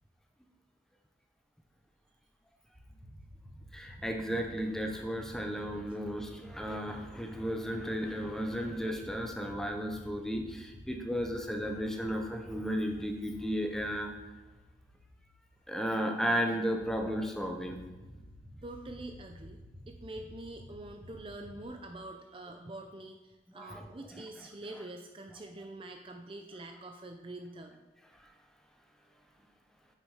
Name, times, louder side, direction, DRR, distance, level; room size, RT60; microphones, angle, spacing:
sound 1, 2.7-21.6, equal, 70° right, 2.3 m, -52 dB
voice 1, 3.7-14.1 15.7-17.8 23.5-23.9, equal, 5° left, 3 dB, 0.9 m, -34 dB
voice 2, 18.6-19.6 19.9-27.8, right 2 dB, 30° right, 4 dB, 0.5 m, -45 dB
9.5 x 6.6 x 5.0 m, 1.2 s
head